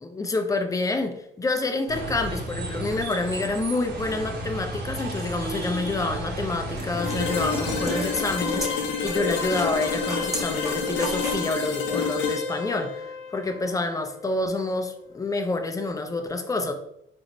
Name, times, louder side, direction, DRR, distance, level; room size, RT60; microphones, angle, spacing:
voice 1, 0.0-16.7, left 2 dB, 15° left, 6 dB, 0.5 m, -28 dB
sound 1, 1.9-8.2, right 1 dB, 55° right, 1.1 m, -33 dB
sound 2, 6.2-11.5, equal, 15° right, 1.0 m, -35 dB
sound 3, 7.0-14.8, left 5 dB, 75° left, 0.7 m, -30 dB
4.0 x 2.6 x 3.0 m, 0.77 s
cardioid pair, 90°, 20 cm